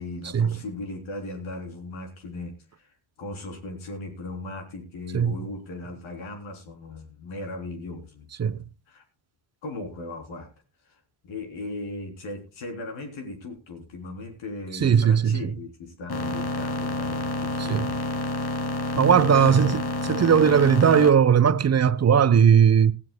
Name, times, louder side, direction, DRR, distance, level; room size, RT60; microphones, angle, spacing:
voice 1, 0.0-9.0 9.6-10.5 10.9-18.1 19.4-19.8, left 2 dB, 70° left, 3.6 m, -38 dB
voice 2, 14.8-15.4 17.6-17.9 19.0-19.8 20.1-22.9, right 7 dB, 35° right, 0.8 m, -18 dB
sound 1, 16.1-21.1, left 2 dB, 50° left, 2.7 m, -29 dB
19.5 x 14.0 x 2.2 m
supercardioid pair, 55°, 48 cm